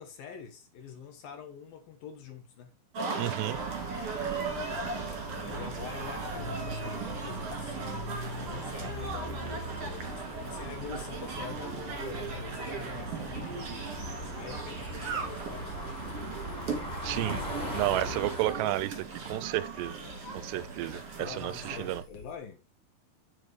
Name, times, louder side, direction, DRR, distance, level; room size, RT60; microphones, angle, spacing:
voice 1, 0.0-2.8 5.2-13.8 14.3-16.4 21.2-22.6, left 7 dB, 65° left, 3.0 m, -45 dB
sound 1, 2.9-22.0, right 4 dB, 40° right, 2.8 m, -38 dB
voice 2, 3.2-3.6 17.0-17.4 17.7-19.9 20.3-21.0 21.4-22.0, right 15 dB, 85° right, 2.8 m, -31 dB
sound 2, 3.5-18.5, equal, 10° left, 3.4 m, -41 dB
sound 3, 6.9-22.3, left 1 dB, 50° left, 1.6 m, -51 dB
8.4 x 7.9 x 3.2 m
omnidirectional pair, 4.9 m